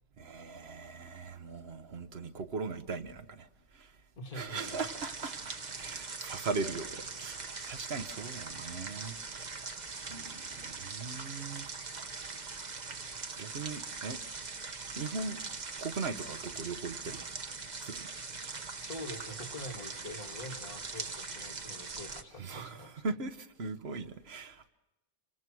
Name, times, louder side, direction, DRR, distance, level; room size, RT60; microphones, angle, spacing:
voice 1, 0.2-4.0 4.3-9.2 10.1-11.7 12.1-12.4 13.0-14.2 14.9-15.4 15.8-17.2 17.8-18.1 22.4-24.7, right 4 dB, 55° right, 1.3 m, -39 dB
voice 2, 4.2-4.8 18.8-23.0, left 1 dB, 45° left, 2.3 m, -45 dB
sound 1, 4.6-22.2, right 4 dB, 35° right, 1.2 m, -42 dB
27.5 x 25.5 x 6.2 m
omnidirectional pair, 1.3 m